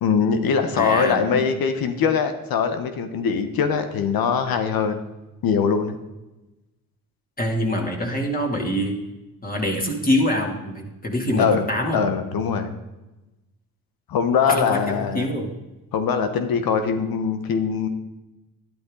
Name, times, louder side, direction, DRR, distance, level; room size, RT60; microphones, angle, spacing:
voice 1, 0.0-5.0 5.4-6.0 11.4-12.7 14.1-15.3 15.9-17.9, left 6 dB, 75° left, 8 dB, 1.2 m, -22 dB
voice 2, 0.7-1.4 7.4-9.0 9.4-12.0 14.5-15.5, equal, 25° left, 0 dB, 2.9 m, -25 dB
11.5 x 10.5 x 3.9 m, 1.0 s
supercardioid pair, 65°, 36 cm